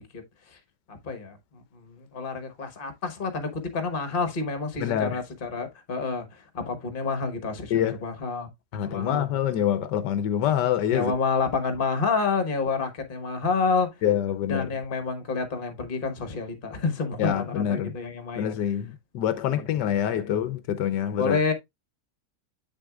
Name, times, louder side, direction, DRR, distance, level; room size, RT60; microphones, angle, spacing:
voice 1, 0.9-9.3 10.9-13.9 14.5-18.5 19.5-19.6 20.1-20.4 21.2-21.5, left 4 dB, 35° left, 1.3 m, -29 dB
voice 2, 4.8-5.2 7.7-8.0 8.7-11.1 14.0-14.7 17.2-17.9 18.4-21.4, left 10 dB, 80° left, 1.3 m, -26 dB
8.1 x 6.3 x 2.3 m
omnidirectional pair, 1.9 m